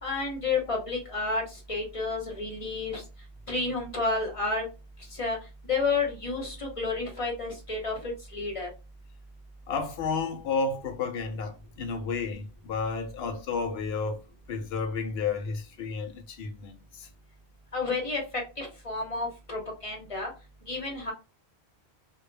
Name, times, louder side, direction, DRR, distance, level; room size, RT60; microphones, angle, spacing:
voice 1, 0.0-3.0 3.5-4.6 5.1-5.4 5.7-8.7 17.7-18.2 18.6-20.3 20.7-21.1, left 3 dB, 35° left, 0.8 m, -30 dB
voice 2, 9.7-14.2 14.5-17.1, left 4 dB, 70° left, 0.8 m, -32 dB
2.1 x 2.1 x 3.1 m
omnidirectional pair, 1.1 m